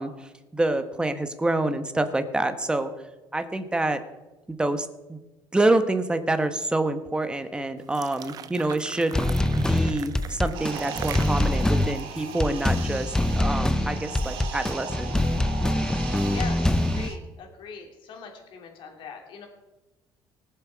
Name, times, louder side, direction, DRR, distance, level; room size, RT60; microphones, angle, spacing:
voice 1, 0.0-2.9 3.3-4.0 4.5-5.2 5.5-15.1, right 2 dB, 10° right, 9 dB, 1.1 m, -27 dB
sound 1, 7.8-13.0, right 9 dB, 45° right, 0.6 m, -41 dB
sound 2, 9.1-17.1, left 1 dB, 5° left, 0.5 m, -24 dB
sound 3, 10.5-17.2, right 7 dB, 70° right, 1.5 m, -38 dB
voice 2, 16.3-19.5, left 6 dB, 65° left, 2 dB, 2.8 m, -41 dB
19.5 x 7.3 x 4.7 m, 1.1 s
cardioid pair, 120°, 9 cm